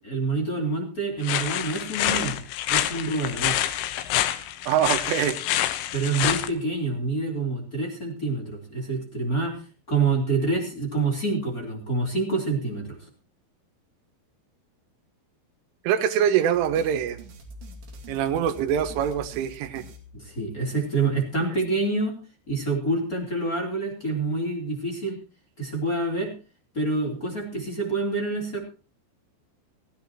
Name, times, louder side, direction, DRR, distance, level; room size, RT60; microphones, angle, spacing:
voice 1, 0.0-2.4 2.7-3.6 5.9-9.6 9.9-13.0 20.1-22.2 22.5-25.2 25.6-26.3 26.7-28.6, right 3 dB, 20° left, 0 dB, 3.1 m, -27 dB
sound 1, 1.2-6.5, left 13 dB, 85° left, 3.7 m, -27 dB
voice 2, 4.7-5.4 15.9-17.2 18.1-19.8, right 9 dB, 85° right, 8 dB, 3.7 m, -24 dB
sound 2, 16.5-20.8, equal, 60° right, 4.2 m, -45 dB
19.0 x 16.0 x 3.0 m, 0.34 s
omnidirectional pair, 5.7 m